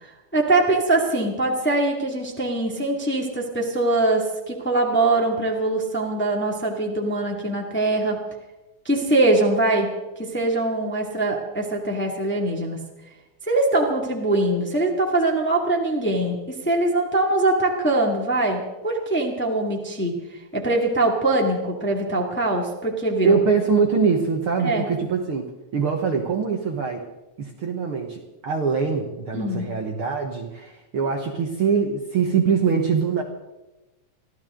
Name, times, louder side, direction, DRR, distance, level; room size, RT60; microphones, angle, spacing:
voice 1, 0.0-8.3 8.8-12.8 13.5-23.3 24.6-24.9 29.3-29.7, right 2 dB, 5° left, 0 dB, 1.7 m, -23 dB
voice 2, 23.2-27.0 27.4-33.2, right 5 dB, 55° right, 2 dB, 1.8 m, -23 dB
24.5 x 15.0 x 3.8 m, 1.0 s
omnidirectional pair, 3.5 m